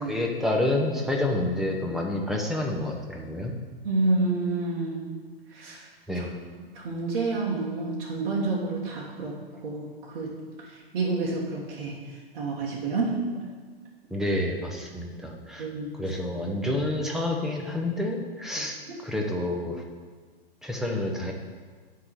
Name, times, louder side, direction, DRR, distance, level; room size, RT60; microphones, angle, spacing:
voice 1, 0.0-3.5 6.1-6.3 14.1-15.7 16.0-18.8 19.0-19.8 20.6-21.3, left 1 dB, ahead, 0 dB, 0.8 m, -28 dB
voice 2, 3.8-5.2 5.5-5.9 6.1-6.2 6.6-9.4 9.6-13.4 15.6-16.0 18.6-18.7, right 3 dB, 55° right, -5 dB, 1.7 m, -29 dB
9.5 x 3.8 x 6.9 m, 1.5 s
hypercardioid pair, 115°, 30 cm